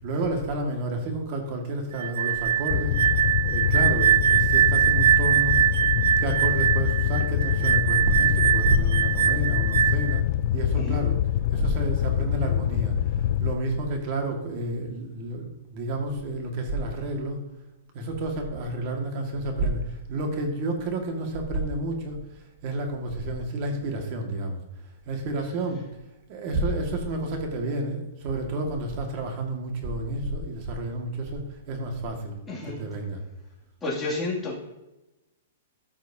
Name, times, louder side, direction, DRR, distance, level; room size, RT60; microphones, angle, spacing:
voice 1, 0.0-5.6 6.2-10.2 10.5-11.2 11.5-17.4 17.9-24.6 25.1-25.8 26.3-32.4 32.6-33.2, right 1 dB, 40° right, 3 dB, 1.9 m, -30 dB
sound 1, 2.0-10.2, right 11 dB, 75° right, 0.6 m, -22 dB
Fire, 2.7-13.5, left 12 dB, 50° left, 0.3 m, -25 dB
voice 2, 32.5-32.8 33.8-34.5, left 2 dB, 10° left, -6 dB, 2.6 m, -30 dB
14.5 x 6.2 x 2.8 m, 0.99 s
hypercardioid pair, 150°, 0 cm